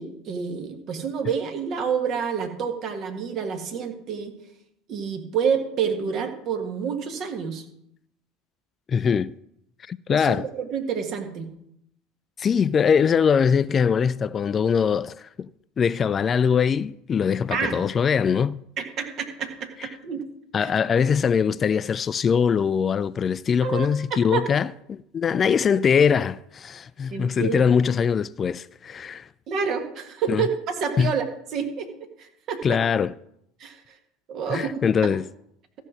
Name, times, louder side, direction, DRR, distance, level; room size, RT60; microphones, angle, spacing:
voice 1, 0.0-4.3 4.9-7.6 10.1-11.5 17.5-17.8 18.8-20.3 20.6-20.7 23.6-24.4 27.1-27.6 29.5-31.2 31.5-32.8 33.6-34.0 34.3-34.7, right 6 dB, 50° right, 1.7 m, -28 dB
voice 2, 8.9-9.3 9.9-10.5 12.4-15.5 15.8-18.6 20.5-29.3 30.3-30.5 31.0-31.1 32.6-33.1 34.5-35.2, left 6 dB, 35° left, 0.3 m, -22 dB
14.0 x 5.5 x 6.2 m
hypercardioid pair, 75°, 0 cm